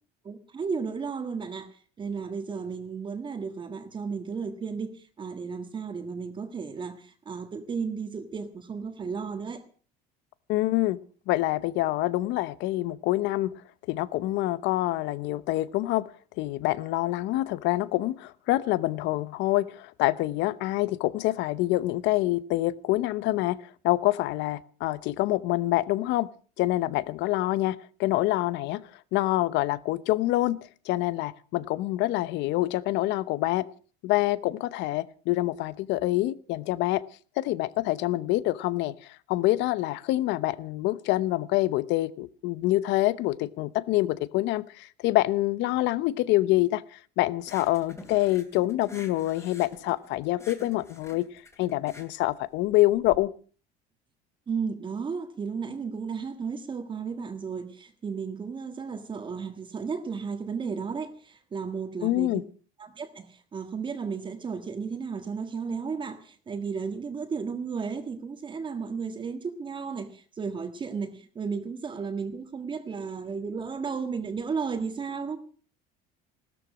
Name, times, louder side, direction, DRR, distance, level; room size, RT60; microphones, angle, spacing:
voice 1, 0.2-9.6 54.5-62.4 62.8-75.4, right 5 dB, 25° right, 1.7 m, -34 dB
voice 2, 10.5-11.0 11.3-13.5 13.9-16.1 16.4-23.6 23.8-26.3 26.6-28.8 29.1-30.6 30.9-33.7 34.0-37.0 37.4-38.9 39.3-46.8 47.2-51.3 51.6-53.3 62.0-62.4, left 17 dB, 65° left, 0.9 m, -26 dB
sound 1, 47.4-53.2, left 2 dB, 15° left, 2.8 m, -48 dB
16.5 x 13.5 x 6.2 m
cardioid pair, 145°, 20 cm